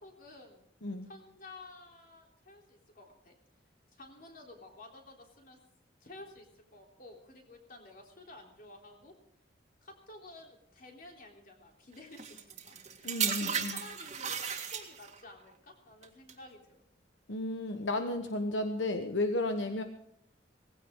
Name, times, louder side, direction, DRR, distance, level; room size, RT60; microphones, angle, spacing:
voice 1, 0.0-0.7 1.1-3.3 4.0-5.6 6.0-9.1 9.8-16.8 19.7-19.8, left 2 dB, 50° left, 1 dB, 3.5 m, -52 dB
sound 1, 12.2-15.2 16.0-16.3, right 7 dB, 40° right, 2.1 m, -35 dB
voice 2, 13.0-13.8 17.3-19.8, left 2 dB, 85° left, 7 dB, 1.2 m, -33 dB
18.5 x 16.5 x 3.8 m, 0.74 s
head